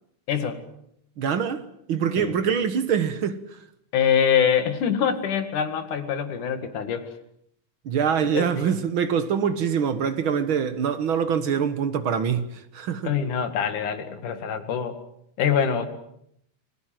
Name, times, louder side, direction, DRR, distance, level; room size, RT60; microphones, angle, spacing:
voice 1, 0.3-0.6 2.2-2.4 3.9-7.1 8.3-8.7 13.1-15.0 15.4-15.9, left 8 dB, 85° left, 3.6 m, -24 dB
voice 2, 1.2-1.6 1.9-3.6 7.8-13.1, right 7 dB, 50° right, 1.8 m, -24 dB
29.0 x 20.5 x 7.7 m
omnidirectional pair, 3.5 m